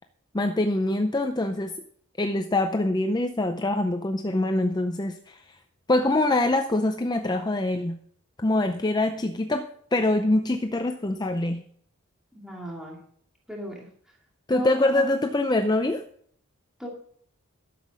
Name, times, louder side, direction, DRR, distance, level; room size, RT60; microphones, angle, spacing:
voice 1, 0.3-1.7 2.2-5.4 5.9-8.0 8.4-11.6 14.5-16.0, left 2 dB, 20° left, 7 dB, 0.5 m, -24 dB
voice 2, 12.3-13.0 13.5-13.9 14.5-15.1 16.8-16.9, equal, ahead, -2 dB, 2.3 m, -36 dB
12.0 x 7.4 x 6.3 m, 0.62 s
head